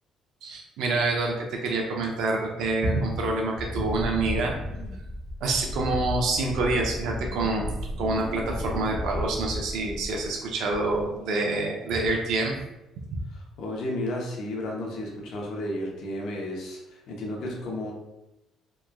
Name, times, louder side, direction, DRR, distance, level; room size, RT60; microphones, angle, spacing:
voice 1, 0.4-4.5 5.4-7.7 8.0-12.5 13.0-13.2, right 2 dB, 70° right, 0 dB, 0.4 m, -27 dB
Wind, 3.5-10.4 10.7-11.2, left 1 dB, 25° left, 0.3 m, -34 dB
voice 2, 13.3-17.9, left 1 dB, 65° left, -1 dB, 0.6 m, -33 dB
3.0 x 2.2 x 2.2 m, 0.95 s
cardioid pair, 145°, 0 cm